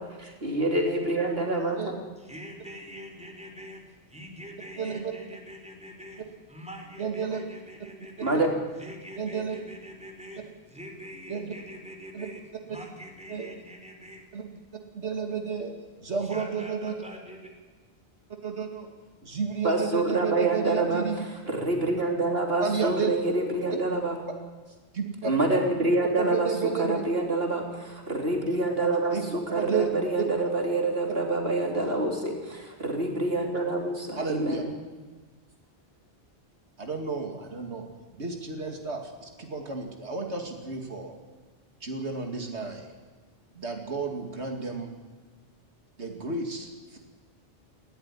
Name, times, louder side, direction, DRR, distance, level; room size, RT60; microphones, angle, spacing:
voice 1, 0.0-1.8 8.2-8.5 19.6-24.2 25.2-34.7, right 2 dB, 60° right, 2 dB, 3.6 m, -27 dB
voice 2, 2.2-3.8 4.1-8.4 8.8-14.2 16.2-17.5, equal, 5° right, 2 dB, 4.2 m, -44 dB
voice 3, 4.8-5.1 7.0-7.4 9.2-9.6 11.3-11.5 12.1-12.3 13.3-13.5 14.3-14.4 14.9-15.7 16.0-16.9 18.4-18.9 19.2-21.2 22.6-23.1 24.9-25.3 26.2-27.0 29.1-29.2 29.5-29.9 30.2-30.3 34.2-34.6 36.8-37.8 38.1-41.2 41.8-42.9 43.6-44.9 46.0-47.0, right 5 dB, 85° right, 3 dB, 2.6 m, -31 dB
19.5 x 16.5 x 9.9 m, 1.3 s
omnidirectional pair, 1.1 m